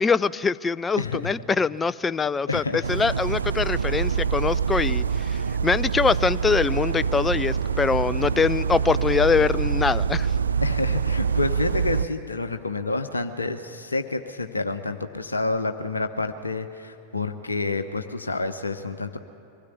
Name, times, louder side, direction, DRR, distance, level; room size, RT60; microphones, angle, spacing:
voice 1, 0.0-10.3, left 5 dB, 15° left, 19 dB, 0.5 m, -23 dB
voice 2, 1.0-1.3 2.5-2.8 10.6-19.2, left 3 dB, 80° left, 7 dB, 0.9 m, -28 dB
sound 1, 2.8-12.1, right 6 dB, 75° right, 0.5 m, -25 dB
23.5 x 17.0 x 9.4 m, 2.7 s
figure-of-eight pair, 90°, 0 cm